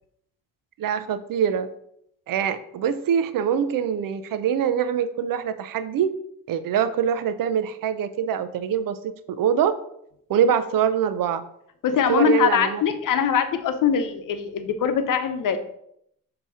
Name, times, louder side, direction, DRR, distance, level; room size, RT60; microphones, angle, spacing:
voice 1, 0.8-1.7 2.3-6.1 6.5-9.0 9.3-9.7 10.3-11.4 12.1-12.8, right 8 dB, 80° right, 13 dB, 0.6 m, -24 dB
voice 2, 11.8-15.6, left 8 dB, 75° left, 8 dB, 0.8 m, -22 dB
6.7 x 2.9 x 4.8 m, 0.72 s
cardioid pair, 60°, 33 cm